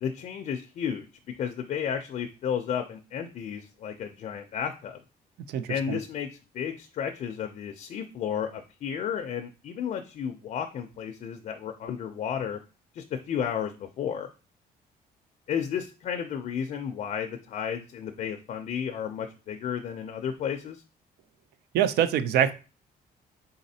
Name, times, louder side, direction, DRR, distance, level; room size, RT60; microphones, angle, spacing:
voice 1, 0.0-5.0 5.7-12.6 12.9-14.3 15.5-20.8, left 8 dB, 45° left, 5 dB, 0.4 m, -33 dB
voice 2, 5.5-6.0 21.7-22.5, right 10 dB, 90° right, 13 dB, 0.4 m, -24 dB
4.0 x 3.8 x 2.7 m, 0.32 s
cardioid pair, 160°, 16 cm